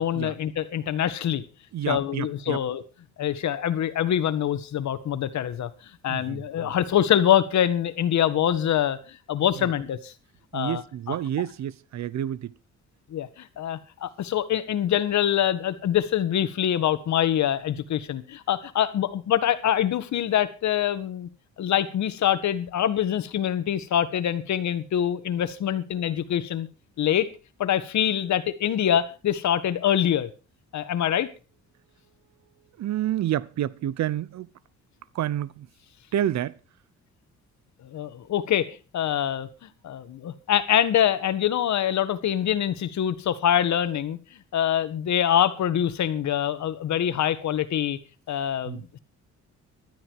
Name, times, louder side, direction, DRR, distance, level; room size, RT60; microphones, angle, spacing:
voice 1, 0.0-1.4 1.9-2.8 3.2-5.7 6.0-10.1 10.5-10.8 11.1-11.2 13.1-21.3 21.6-26.7 27.0-27.3 27.6-30.3 30.7-31.3 37.9-44.2 44.5-48.0 48.3-49.0, left 10 dB, 65° left, 1.7 m, -25 dB
voice 2, 1.7-2.6 6.1-6.7 9.6-9.7 10.5-12.5 32.8-34.5 35.1-35.7 36.1-36.6 48.7-48.8, right 11 dB, 65° right, 0.8 m, -29 dB
15.0 x 12.5 x 4.8 m
cardioid pair, 90°, 30 cm